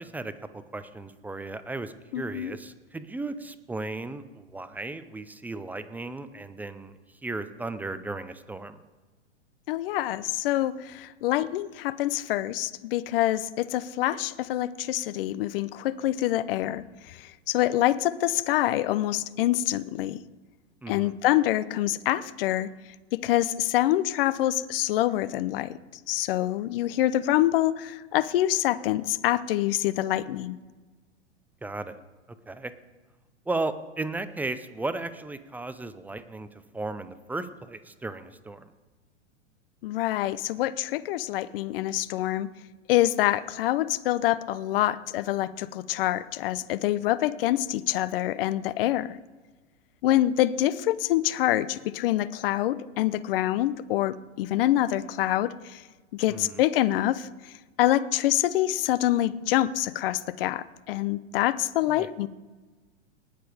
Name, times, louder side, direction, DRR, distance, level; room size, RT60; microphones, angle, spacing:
voice 1, 0.0-8.8 20.8-21.2 31.6-32.0 32.5-32.7 33.5-38.7 56.3-56.6 61.9-62.1, right 2 dB, 5° right, 12 dB, 0.5 m, -35 dB
voice 2, 2.1-2.6 9.7-20.2 20.9-22.7 23.1-25.8 26.1-30.6 39.8-42.5 42.9-49.2 50.0-55.8 56.1-57.5 57.8-62.3, left 14 dB, 50° left, 16 dB, 0.8 m, -26 dB
19.0 x 6.9 x 5.0 m, 1.3 s
hypercardioid pair, 105°, 35 cm